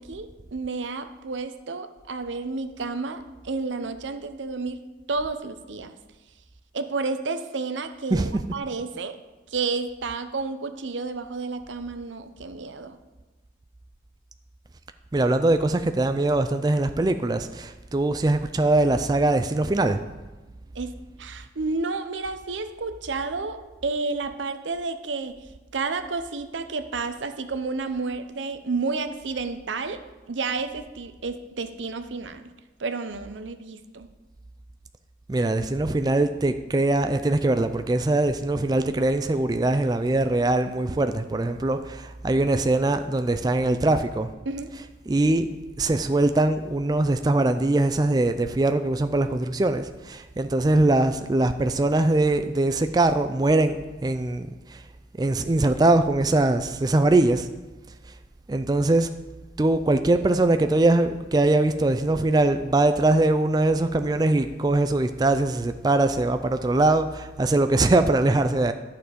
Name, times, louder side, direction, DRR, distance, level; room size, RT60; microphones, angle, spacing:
voice 1, 0.0-4.8 5.1-6.0 6.7-9.1 9.5-13.0 20.7-20.9 21.2-23.6 23.8-30.0 30.3-32.5 32.8-34.1 44.5-44.7, right 4 dB, 90° right, 9 dB, 0.8 m, -31 dB
voice 2, 8.1-8.4 15.1-20.0 35.3-44.3 45.1-45.5 45.8-54.8 55.2-57.5 58.5-59.1 59.6-68.7, right 2 dB, 20° right, 9 dB, 0.3 m, -22 dB
11.5 x 6.7 x 5.1 m, 1.2 s
head